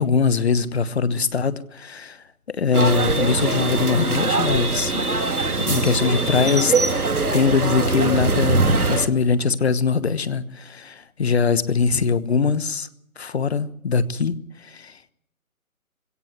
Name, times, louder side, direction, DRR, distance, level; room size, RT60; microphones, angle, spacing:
voice 1, 0.0-5.1 5.6-6.7 7.3-12.9 13.2-15.0, left 5 dB, 45° left, 16 dB, 1.2 m, -22 dB
sound 1, 2.7-9.1, right 3 dB, 85° right, 2.1 m, -22 dB
20.5 x 17.0 x 8.0 m, 0.77 s
figure-of-eight pair, 150°, 43 cm